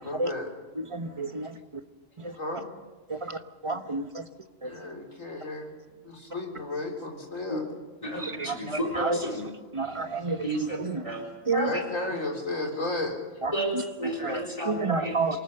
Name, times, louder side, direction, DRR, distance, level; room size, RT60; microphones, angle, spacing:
voice 1, 0.0-0.5 2.3-2.6 4.6-5.7 6.0-7.7 9.3-9.4 11.5-13.2, left 2 dB, 75° left, 4.2 m, -33 dB
voice 2, 0.9-1.5 3.6-4.0 8.2-8.6 9.0-9.2 9.7-10.4 10.8-11.0 11.5-11.7 14.2-14.4 14.7-15.4, right 4 dB, 25° right, 0.9 m, -28 dB
voice 3, 8.0-9.5 10.4-10.8 11.0-11.2 11.5-11.8 13.5-15.4, right 1 dB, 25° left, 4.0 m, -32 dB
27.5 x 19.0 x 6.7 m
omnidirectional pair, 1.4 m